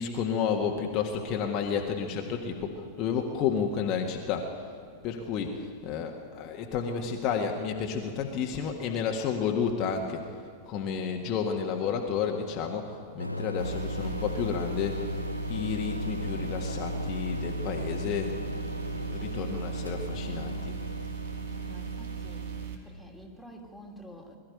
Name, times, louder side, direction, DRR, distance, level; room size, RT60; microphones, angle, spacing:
voice 1, 0.0-4.5 5.0-10.2 10.7-15.2 15.5-20.8, left 6 dB, 40° left, 2 dB, 1.6 m, -31 dB
sound 1, 13.2-22.7, left 2 dB, 90° left, 0.4 m, -36 dB
sound 2, 13.6-22.8, right 9 dB, 55° right, 2.3 m, -38 dB
voice 2, 21.7-24.4, equal, ahead, 0 dB, 3.0 m, -49 dB
21.0 x 13.5 x 9.2 m, 2.4 s
figure-of-eight pair, 90°, 0 cm